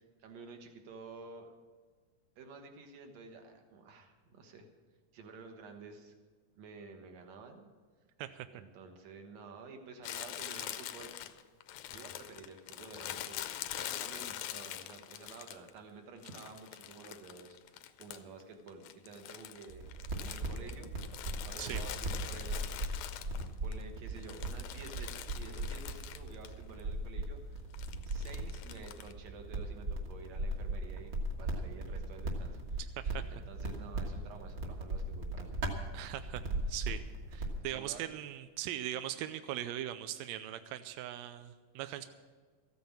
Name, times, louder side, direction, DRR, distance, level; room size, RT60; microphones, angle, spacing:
voice 1, 0.0-1.5 2.4-4.7 5.1-6.1 6.6-7.7 8.5-11.1 11.9-13.4 13.7-20.9 21.4-27.6 28.1-31.1 31.4-32.8 33.3-35.6 37.6-38.0, right 4 dB, 60° right, 4 dB, 2.4 m, -51 dB
Crumpling crinkling, 10.0-15.8 16.2-18.4 18.7-23.7 24.1-26.5 26.8-26.9 27.7-29.1, left 12 dB, 85° left, 2.2 m, -44 dB
sound 1, 19.7-37.6, right 2 dB, 45° right, 1.8 m, -39 dB
voice 2, 35.9-37.0 37.3-42.0, right 12 dB, 85° right, 10 dB, 1.6 m, -40 dB
14.0 x 9.3 x 7.3 m, 1.5 s
omnidirectional pair, 3.6 m